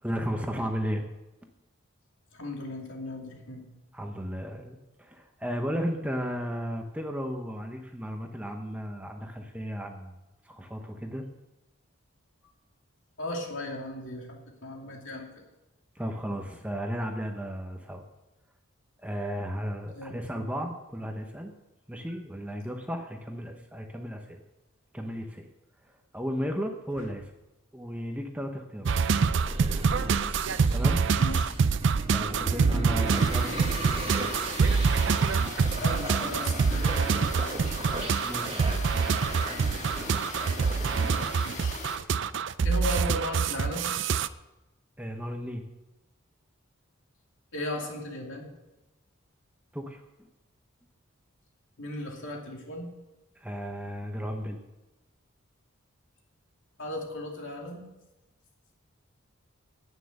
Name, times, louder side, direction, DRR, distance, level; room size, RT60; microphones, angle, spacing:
voice 1, 0.0-1.0 3.9-10.1 10.4-11.2 15.9-18.0 19.0-21.5 21.9-24.4 24.9-25.4 25.8-27.3 27.7-28.9 30.7-31.0 32.1-33.5 38.2-39.1 45.0-45.6 49.7-50.3 53.4-54.6, equal, 5° right, 3 dB, 0.8 m, -34 dB
voice 2, 2.3-3.7 13.2-15.3 19.9-20.5 27.0-27.1 31.2-31.5 32.6-32.9 35.8-37.6 41.4-41.8 42.6-43.9 47.5-48.5 51.8-52.9 56.8-57.8, left 1 dB, 65° left, 0 dB, 2.6 m, -37 dB
sound 1, 28.8-44.3, right 5 dB, 55° right, 0.4 m, -26 dB
sound 2, 29.3-41.3, right 2 dB, 25° right, 1.2 m, -37 dB
sound 3, 33.1-42.0, left 3 dB, 35° left, 1.4 m, -40 dB
9.9 x 9.3 x 6.5 m, 1.0 s
head